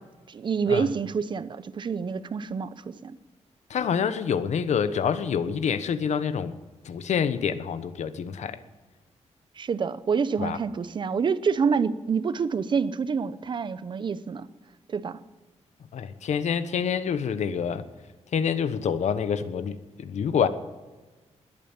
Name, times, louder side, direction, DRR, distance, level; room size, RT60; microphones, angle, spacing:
voice 1, 0.3-3.2 9.6-14.5 14.9-15.2, right 6 dB, 40° right, 15 dB, 0.8 m, -27 dB
voice 2, 3.7-6.5 6.8-8.6 10.4-10.6 15.9-17.8 18.3-20.5, left 7 dB, 75° left, 12 dB, 1.2 m, -27 dB
20.5 x 9.0 x 7.4 m, 1.2 s
wide cardioid pair, 175°, 12 cm